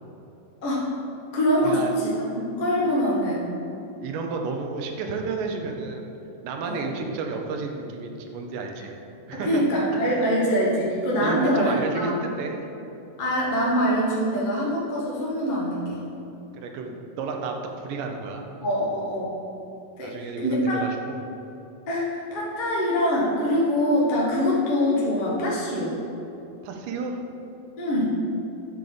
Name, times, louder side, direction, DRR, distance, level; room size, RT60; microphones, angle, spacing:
voice 1, 1.3-3.5 6.6-6.8 8.8-8.9 9.3-11.7 13.2-16.0 18.6-19.4 20.0-20.1 20.4-20.8 21.9-26.0 27.8-28.2, equal, 65° left, -6 dB, 0.4 m, -24 dB
voice 2, 4.0-6.1 6.4-8.9 9.3-9.7 10.0-10.3 11.2-12.6 16.6-18.5 20.0-21.3 26.6-27.2, right 4 dB, 90° right, 3 dB, 2.4 m, -31 dB
8.8 x 3.9 x 6.9 m, 2.9 s
omnidirectional pair, 3.7 m